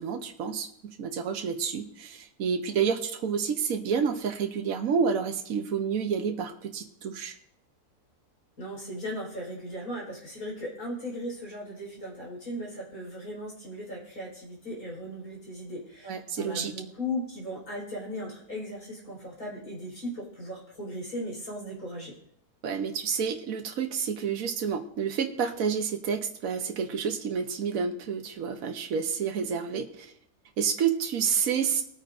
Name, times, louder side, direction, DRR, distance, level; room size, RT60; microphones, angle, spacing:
voice 1, 0.0-7.3 16.0-16.7 22.6-30.1 30.6-31.8, right 6 dB, 65° right, 4 dB, 1.4 m, -29 dB
voice 2, 8.6-22.1, left 1 dB, 65° left, -4 dB, 5.1 m, -37 dB
20.5 x 9.0 x 2.7 m, 0.67 s
omnidirectional pair, 1.7 m